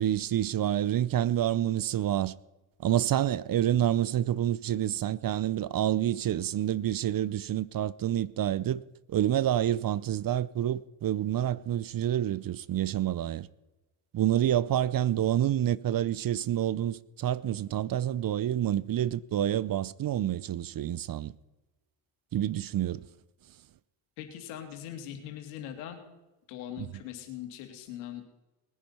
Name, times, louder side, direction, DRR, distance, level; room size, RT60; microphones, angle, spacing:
voice 1, 0.0-2.3 2.8-8.8 9.1-13.5 14.1-21.3 22.3-23.0 26.8-26.9, right 11 dB, 45° right, 0.7 m, -28 dB
voice 2, 24.2-26.0 26.5-28.2, left 10 dB, 85° left, 2.5 m, -41 dB
20.0 x 10.0 x 5.7 m
supercardioid pair, 65°, 50 cm